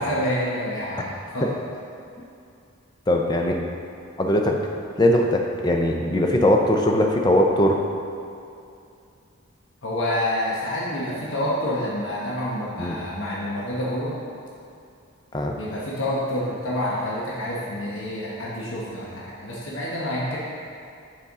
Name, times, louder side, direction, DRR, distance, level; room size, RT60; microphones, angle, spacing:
voice 1, 0.0-1.5 9.8-14.2 15.5-20.4, left 1 dB, 65° left, -6 dB, 1.0 m, -28 dB
voice 2, 3.1-3.6 4.2-4.6 5.0-7.8 12.8-13.0 15.3-15.5, left 1 dB, 20° left, 1 dB, 0.5 m, -20 dB
6.6 x 5.5 x 3.6 m, 2.6 s
head